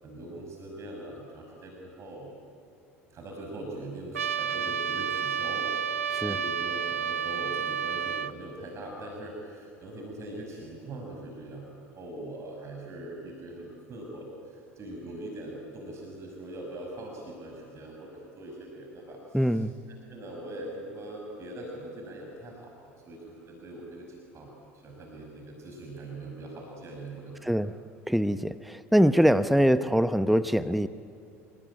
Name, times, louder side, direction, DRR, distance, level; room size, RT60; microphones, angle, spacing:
voice 1, 0.0-2.3 3.1-6.0 6.2-19.6 20.1-22.7 23.0-24.5 24.8-27.5, right 1 dB, 40° right, 0 dB, 5.7 m, -42 dB
Trumpet, 4.1-8.3, right 8 dB, 85° right, 0.8 m, -30 dB
voice 2, 19.3-19.7 27.4-27.8 28.1-30.9, equal, ahead, 14 dB, 0.8 m, -23 dB
29.0 x 20.0 x 9.9 m, 2.3 s
hypercardioid pair, 70°, 7 cm